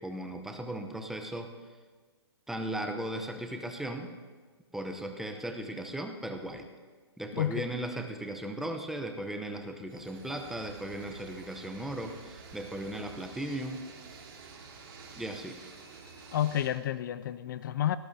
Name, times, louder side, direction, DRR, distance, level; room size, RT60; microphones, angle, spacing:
voice 1, 0.0-1.5 2.5-4.1 4.7-6.7 7.2-13.8 15.2-15.6, right 1 dB, ahead, 5 dB, 0.8 m, -37 dB
voice 2, 7.3-7.7 16.3-18.0, left 11 dB, 50° left, 15 dB, 0.4 m, -30 dB
sound 1, 9.9-16.7, right 4 dB, 55° right, 3.6 m, -49 dB
19.0 x 17.5 x 2.8 m, 1.4 s
hypercardioid pair, 150°, 14 cm